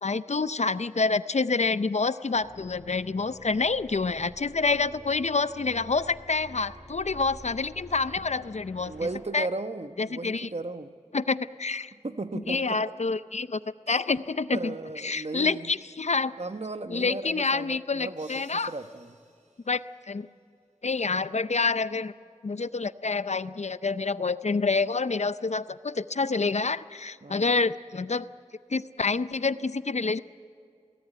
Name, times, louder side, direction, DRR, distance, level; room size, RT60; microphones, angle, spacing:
voice 1, 0.0-8.9 9.3-9.5 10.0-10.5 11.1-11.9 12.5-13.6 13.9-14.7 15.0-16.3 16.9-18.7 19.7-19.8 20.1-20.3 20.8-22.1 22.4-28.3 28.7-30.2, left 4 dB, 65° left, 14 dB, 0.6 m, -27 dB
sound 1, 2.3-9.2, equal, ahead, 7.8 m, -49 dB
voice 2, 8.2-8.5 8.8-10.9 12.0-12.8 13.9-14.0 14.5-15.7 16.4-19.2 27.2-27.6, right 2 dB, 60° right, 9 dB, 1.1 m, -36 dB
sound 2, 18.2-20.5, right 2 dB, 80° right, 2.6 m, -58 dB
22.5 x 17.5 x 9.0 m, 2.3 s
wide cardioid pair, 50°, 12 cm